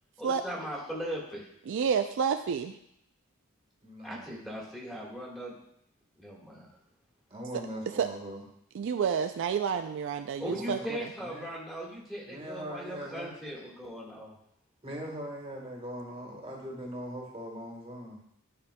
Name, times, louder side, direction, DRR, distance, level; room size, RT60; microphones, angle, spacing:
voice 1, 0.2-1.5 4.0-5.6 6.2-6.3 10.4-14.3, equal, ahead, -5 dB, 1.6 m, -39 dB
voice 2, 1.7-2.8 8.0-8.1 8.7-11.1, right 7 dB, 60° right, 7 dB, 0.3 m, -29 dB
voice 3, 3.8-4.3 7.3-8.4 10.4-10.9 11.2-11.5 12.3-13.3 14.8-18.2, equal, 30° right, -1 dB, 1.4 m, -41 dB
10.5 x 5.1 x 2.2 m, 0.74 s
head